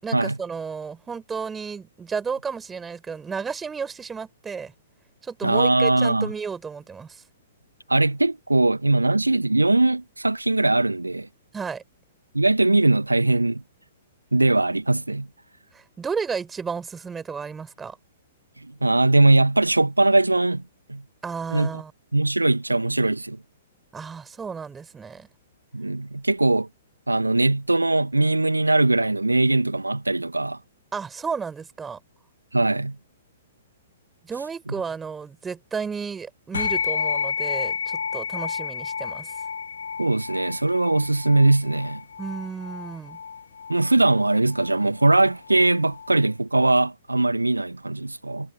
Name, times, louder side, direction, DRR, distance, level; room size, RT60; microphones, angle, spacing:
voice 1, 0.0-4.7 5.2-7.2 11.5-11.8 15.7-18.0 21.2-21.9 23.9-25.3 30.9-32.0 34.2-39.3 42.2-43.2, right 5 dB, 10° right, 5.5 m, -33 dB
voice 2, 5.4-6.3 7.9-11.3 12.3-13.6 14.3-15.3 18.6-20.6 20.9-21.0 21.5-21.7 22.1-23.4 25.7-26.7 27.1-30.6 32.5-33.0 40.0-42.0 43.7-48.5, right 2 dB, 80° right, 1.9 m, -20 dB
sound 1, 36.5-46.2, left 6 dB, 65° left, 1.2 m, -31 dB
figure-of-eight pair, 115°, 0 cm